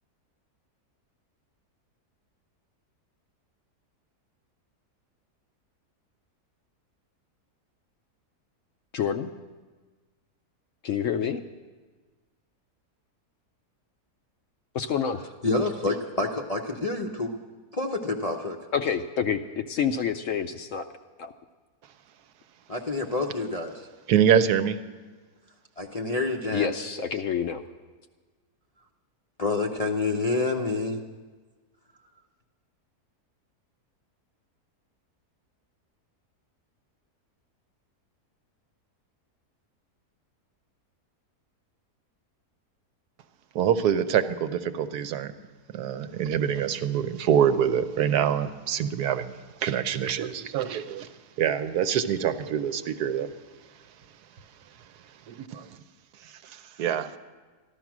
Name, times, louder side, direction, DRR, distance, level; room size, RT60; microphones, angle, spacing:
voice 1, 8.9-9.3 10.8-11.5 14.7-15.2 18.7-20.8 21.2-21.3 26.5-27.6, left 7 dB, 65° left, 8 dB, 0.8 m, -28 dB
voice 2, 15.4-17.3 17.7-18.6 22.7-23.7 25.8-26.7 29.4-31.0, left 3 dB, 40° left, 1 dB, 0.5 m, -28 dB
voice 3, 24.1-24.8 43.5-45.3 45.7-53.3 54.8-55.8 56.2-57.2, right 8 dB, 80° right, 10 dB, 1.2 m, -25 dB
14.0 x 12.0 x 6.0 m, 1.4 s
omnidirectional pair, 1.7 m